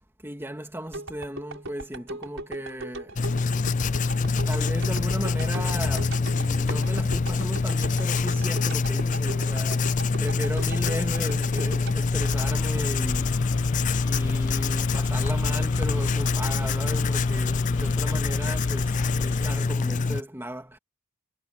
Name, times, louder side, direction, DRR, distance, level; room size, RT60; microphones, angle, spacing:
voice 1, 0.2-3.1 4.5-9.9 10.2-13.3 14.0-20.8, right 1 dB, 10° right, 2.7 m, -36 dB
sound 1, 0.9-13.1 13.5-13.6, right 2 dB, 65° right, 7.1 m, -39 dB
Writing, 3.2-20.2, left 4 dB, 35° left, 0.4 m, -25 dB
sound 2, 12.1-19.6, left 2 dB, 75° left, 1.2 m, -34 dB
head